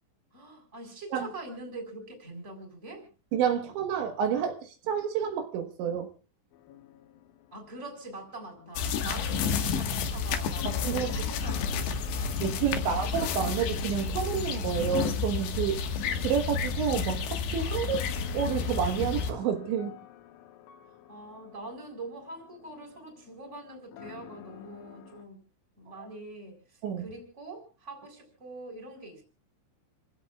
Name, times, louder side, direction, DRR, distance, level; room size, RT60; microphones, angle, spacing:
voice 1, 0.3-3.1 7.5-12.4 17.9-18.0 21.1-25.4 25.8-29.2, right 2 dB, 15° right, 4.1 m, -44 dB
voice 2, 3.3-6.1 10.7-11.1 12.4-15.8 16.2-18.1 18.3-20.0 26.8-27.1, right 8 dB, 75° right, 3.6 m, -29 dB
sound 1, 6.5-25.2, left 11 dB, 90° left, 3.7 m, -49 dB
sound 2, 8.8-19.3, left 5 dB, 70° left, 3.5 m, -31 dB
29.5 x 16.5 x 2.3 m
omnidirectional pair, 5.4 m